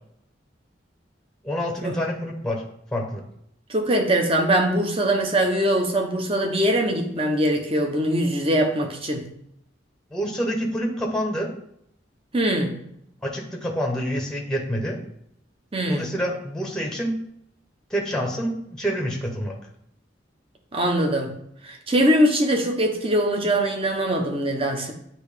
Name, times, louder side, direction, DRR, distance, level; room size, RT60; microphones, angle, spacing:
voice 1, 1.4-2.6 2.9-3.2 10.1-11.5 13.2-15.0 15.9-17.1 17.9-19.5, equal, 5° left, 1 dB, 0.9 m, -27 dB
voice 2, 3.7-9.3 12.3-12.8 15.7-16.1 20.7-21.3 21.6-24.9, right 1 dB, 30° right, 2 dB, 1.0 m, -22 dB
8.8 x 2.9 x 5.0 m, 0.74 s
head